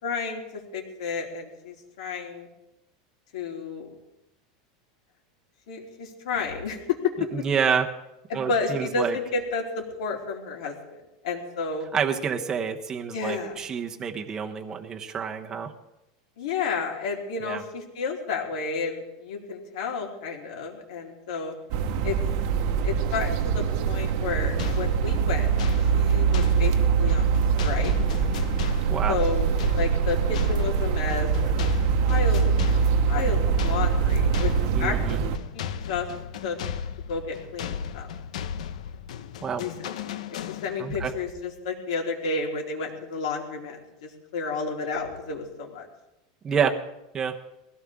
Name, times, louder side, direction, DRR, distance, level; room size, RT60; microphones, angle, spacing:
voice 1, 0.0-2.5 3.3-3.9 5.7-7.1 8.3-11.9 13.1-13.6 16.4-21.5 22.0-22.2 22.8-25.5 25.9-26.7 27.0-27.3 27.6-27.9 29.1-31.7 32.0-32.4 32.7-34.5 34.8-36.1 36.4-36.6 37.1-38.1 39.5-39.7 40.5-45.9, left 4 dB, 70° left, 0 dB, 3.9 m, -31 dB
voice 2, 7.3-7.9 8.3-9.2 11.9-15.7 17.4-17.6 28.9-29.2 34.7-35.2 39.4-39.6 40.8-41.1 46.4-46.7 47.1-47.3, right 7 dB, 15° right, 3 dB, 0.9 m, -28 dB
sound 1, 21.7-35.4, right 6 dB, 45° right, 1.1 m, -23 dB
sound 2, 24.6-41.0, left 8 dB, 90° left, 0.9 m, -36 dB
21.0 x 16.5 x 3.6 m, 0.91 s
supercardioid pair, 175°, 4 cm